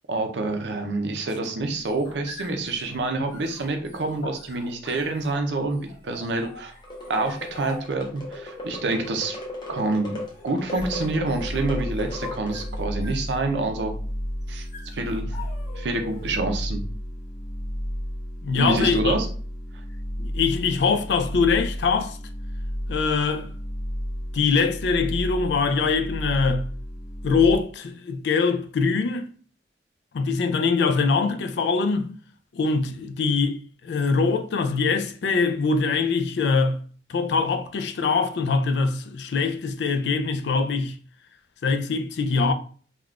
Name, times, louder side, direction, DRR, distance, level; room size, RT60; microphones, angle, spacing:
voice 1, 0.1-6.7 7.1-9.4 9.7-10.2 10.4-13.9 14.5-14.7 14.9-15.3 15.8-16.9 18.6-19.3, right 2 dB, 75° right, 0.6 m, -27 dB
sound 1, 1.6-16.5, left 3 dB, 40° left, 1.5 m, -46 dB
sound 2, 6.8-12.9, left 1 dB, 25° left, 0.7 m, -37 dB
sound 3, 10.8-27.6, equal, 85° left, 1.2 m, -32 dB
voice 2, 18.4-19.1 20.2-22.2 22.9-23.5 24.3-26.7 27.2-29.3 30.1-32.1 32.5-36.8 37.1-41.0 41.6-42.5, left 4 dB, 70° left, 0.4 m, -23 dB
3.5 x 2.3 x 2.4 m
head